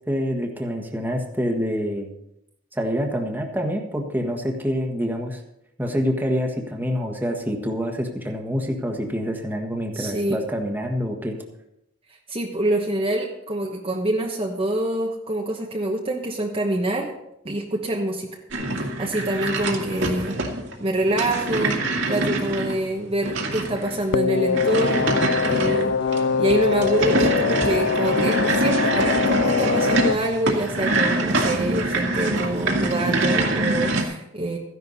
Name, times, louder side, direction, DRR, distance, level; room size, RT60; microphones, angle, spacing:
voice 1, 0.1-2.1 2.7-5.4 5.8-11.4, equal, 10° right, 2 dB, 1.5 m, -26 dB
voice 2, 9.9-10.4 12.3-17.1 17.4-18.3 18.7-20.3 20.8-34.6, right 1 dB, 30° right, 0 dB, 1.1 m, -26 dB
sound 1, 18.5-34.0, right 2 dB, 65° right, 2.1 m, -25 dB
sound 2, 24.1-30.1, left 6 dB, 60° left, 0.4 m, -23 dB
14.5 x 11.0 x 4.1 m, 0.82 s
head